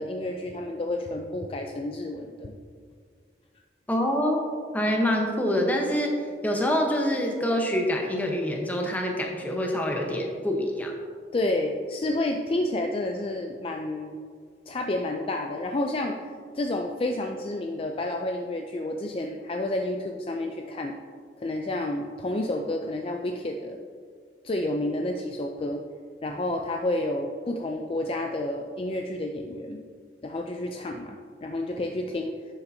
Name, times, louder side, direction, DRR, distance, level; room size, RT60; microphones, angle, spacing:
voice 1, 0.0-2.5 11.3-14.1 14.7-16.2 16.5-20.9 21.4-23.8 24.4-25.8 26.2-29.8 30.2-32.4, left 1 dB, 30° left, 3 dB, 0.4 m, -30 dB
voice 2, 3.9-4.4 4.7-6.1 6.4-10.9, equal, 10° left, 1 dB, 0.9 m, -26 dB
11.0 x 6.8 x 2.7 m, 2.1 s
head